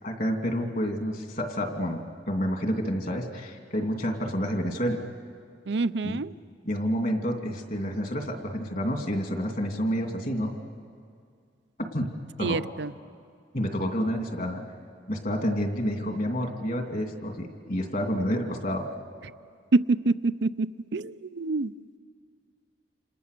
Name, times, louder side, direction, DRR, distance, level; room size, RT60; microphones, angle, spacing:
voice 1, 0.0-2.0 2.3-5.0 6.0-6.2 6.6-10.5 11.9-12.1 12.4-12.6 13.5-14.6 15.1-18.8, equal, 45° left, 3 dB, 2.7 m, -29 dB
voice 2, 5.7-6.3 12.4-12.9 19.7-21.7, right 3 dB, 70° right, 15 dB, 0.6 m, -26 dB
29.0 x 27.5 x 6.8 m, 2.2 s
head